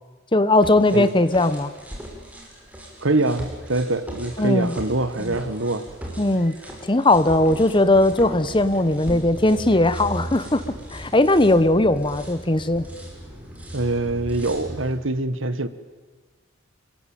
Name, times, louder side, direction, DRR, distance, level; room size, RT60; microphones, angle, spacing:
voice 1, 0.3-1.7 4.4-4.7 5.2-5.3 6.2-6.6 6.9-10.6 10.9-12.9, left 2 dB, 25° left, 14 dB, 1.1 m, -19 dB
sound 1, 0.6-15.0, right 1 dB, 5° right, 5.6 m, -37 dB
voice 2, 3.0-5.9 13.7-15.7, right 2 dB, 65° right, 13 dB, 1.7 m, -24 dB
27.0 x 22.5 x 9.2 m, 1.3 s
head